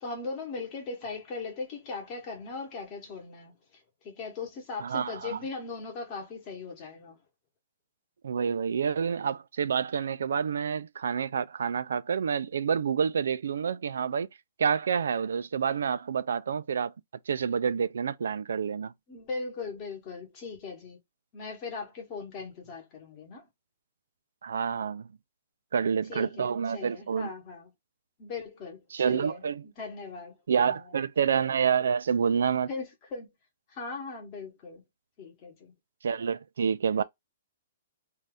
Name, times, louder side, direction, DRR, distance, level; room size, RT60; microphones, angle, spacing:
voice 1, 0.0-3.5 4.0-7.2 19.1-21.0 21.3-23.5 26.1-27.7 28.2-31.0 32.7-33.3 33.7-34.8 35.2-35.7 37.0-37.1, left 4 dB, 25° left, 1.0 m, -39 dB
voice 2, 4.8-5.4 8.2-14.3 14.6-16.9 17.3-18.9 24.4-25.1 25.7-27.3 28.9-29.6 30.5-32.7 36.0-37.0, right 7 dB, 85° right, 0.3 m, -28 dB
2.7 x 2.3 x 3.3 m
hypercardioid pair, 175°, 0 cm